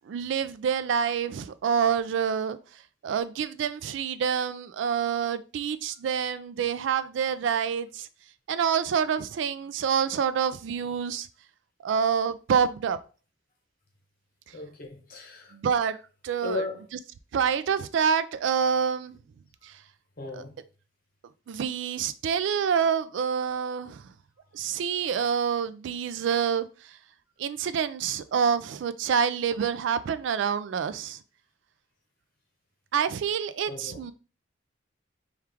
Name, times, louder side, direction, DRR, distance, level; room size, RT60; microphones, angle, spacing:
voice 1, 0.1-2.6 3.0-8.1 8.5-11.3 11.8-13.0 15.5-16.0 16.2-16.6 17.3-19.2 20.3-20.4 21.5-24.0 24.5-26.7 27.4-31.2 32.9-34.1, right 7 dB, 70° right, 13 dB, 0.3 m, -27 dB
voice 2, 14.5-15.5 16.4-16.8 19.6-19.7 20.2-20.6 23.7-23.8 33.7-34.0, left 4 dB, 45° left, 2 dB, 0.9 m, -36 dB
4.5 x 2.4 x 3.4 m, 0.35 s
head